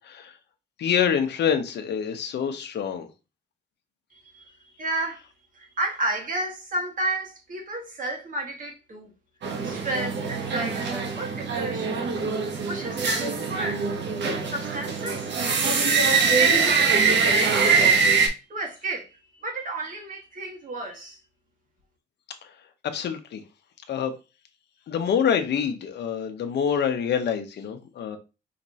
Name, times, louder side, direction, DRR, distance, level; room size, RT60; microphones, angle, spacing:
voice 1, 0.8-3.1 22.9-23.4 23.9-24.1 24.9-28.2, left 7 dB, 60° left, 0.8 m, -26 dB
voice 2, 4.1-5.2 5.5-9.1 9.6-11.9 12.6-13.8 14.4-15.5 16.0-18.0 18.5-21.2, right 2 dB, 40° right, 1.7 m, -32 dB
sound 1, 9.4-18.3, right 5 dB, 60° right, 1.1 m, -23 dB
5.0 x 3.1 x 2.8 m
cardioid pair, 125°, 20 cm